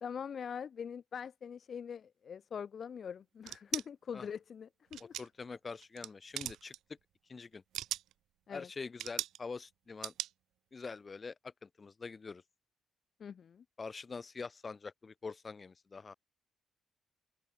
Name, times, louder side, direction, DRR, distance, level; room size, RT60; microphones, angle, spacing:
voice 1, 0.0-5.1 8.5-8.7 13.2-13.6, left 7 dB, 50° left, 1.3 m, -43 dB
sound 1, 3.4-3.9 4.9-5.4 5.8-6.1 6.3-6.8 7.5-8.1 9.0-9.4 10.0-10.3, right 13 dB, 80° right, 0.7 m, -38 dB
voice 2, 5.0-6.7 7.3-7.6 8.5-10.1 10.7-12.4 13.8-16.1, left 4 dB, 30° left, 5.1 m, -45 dB
open air
cardioid pair, 90°, 0 cm